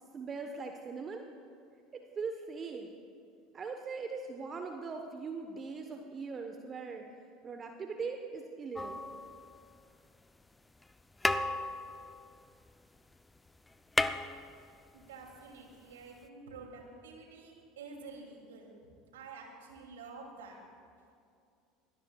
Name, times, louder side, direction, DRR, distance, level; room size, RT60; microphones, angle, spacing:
voice 1, 0.1-1.3 2.2-2.9 3.5-7.0 7.4-9.0, right 4 dB, 35° right, 5 dB, 1.1 m, -40 dB
sound 1, 8.7-9.9 10.8-10.9 11.2-13.1 13.4-13.5 13.7-15.1 16.2-16.3, left 2 dB, 10° left, 0.6 m, -34 dB
voice 2, 14.9-18.7 19.1-20.6, right 4 dB, 75° right, 1 dB, 2.7 m, -49 dB
23.5 x 18.0 x 2.4 m, 2.4 s
hypercardioid pair, 75°, 0 cm